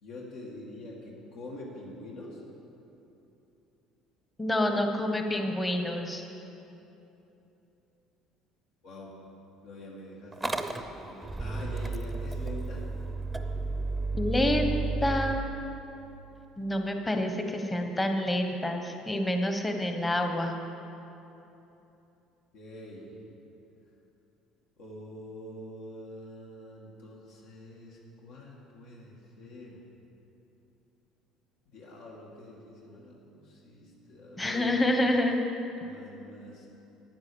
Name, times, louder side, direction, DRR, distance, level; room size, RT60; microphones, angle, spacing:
voice 1, 0.0-2.4 8.8-9.1 9.6-12.8 22.5-23.1 24.8-29.8 31.7-34.7 35.8-36.7, left 1 dB, 75° left, -3 dB, 2.1 m, -45 dB
voice 2, 4.4-6.2 14.1-15.6 16.6-20.5 34.4-35.4, left 1 dB, 15° left, 5 dB, 1.0 m, -28 dB
Motor vehicle (road) / Engine starting, 10.3-15.4, right 3 dB, 10° right, 0.7 m, -32 dB
10.5 x 9.3 x 7.0 m, 3.0 s
cardioid pair, 115°, 0 cm